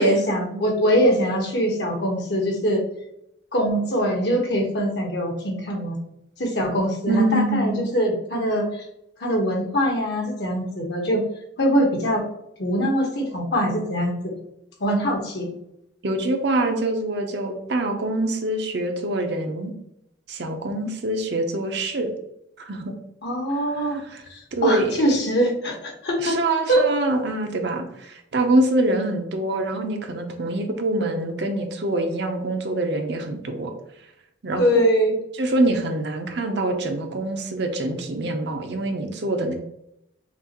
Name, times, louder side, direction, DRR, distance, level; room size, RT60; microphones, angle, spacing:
voice 1, 0.0-2.8 3.5-6.0 6.4-8.8 9.2-11.2 11.6-12.2 12.6-14.3 14.8-15.5 23.2-24.0 24.3-26.4 26.7-26.8 34.6-35.1, equal, 60° left, 0 dB, 1.2 m, -22 dB
voice 2, 7.1-7.8 16.0-19.7 20.3-22.1 22.6-22.9 23.8-24.2 24.5-24.9 26.2-33.7 34.4-34.6 35.4-39.5, right 2 dB, 60° right, 4 dB, 0.7 m, -25 dB
5.9 x 2.5 x 2.9 m, 0.80 s
head